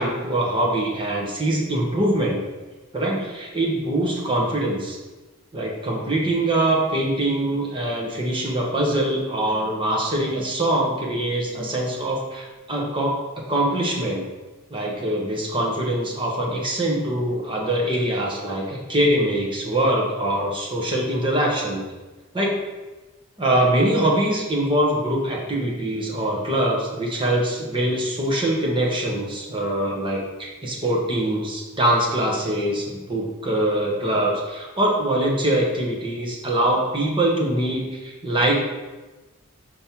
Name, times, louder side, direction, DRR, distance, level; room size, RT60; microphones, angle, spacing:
voice 1, 0.0-2.4 2.9-5.0 5.5-14.3 14.7-21.8 22.3-22.5 23.4-38.6, right 1 dB, 25° right, -3 dB, 1.3 m, -23 dB
5.6 x 5.4 x 4.4 m, 1.2 s
head